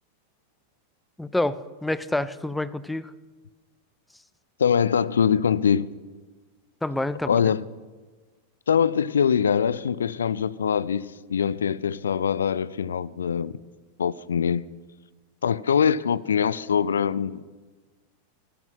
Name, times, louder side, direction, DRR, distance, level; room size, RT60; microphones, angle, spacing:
voice 1, 1.2-3.1 6.8-7.4, left 1 dB, 5° left, 0.6 m, -27 dB
voice 2, 4.6-5.9 7.2-7.6 8.7-13.6 14.0-14.6 15.4-17.4, left 7 dB, 70° left, 0.5 m, -23 dB
15.0 x 11.0 x 7.7 m
figure-of-eight pair, 90°, 0 cm